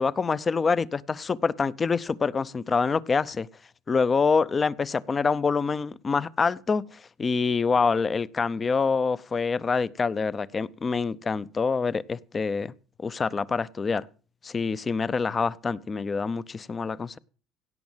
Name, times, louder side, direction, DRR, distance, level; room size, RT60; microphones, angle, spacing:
voice 1, 0.0-3.5 3.9-12.7 13.0-14.1 14.4-17.2, left 5 dB, 25° left, 0.6 m, -26 dB
17.0 x 6.3 x 7.3 m
cardioid pair, 125°, 0 cm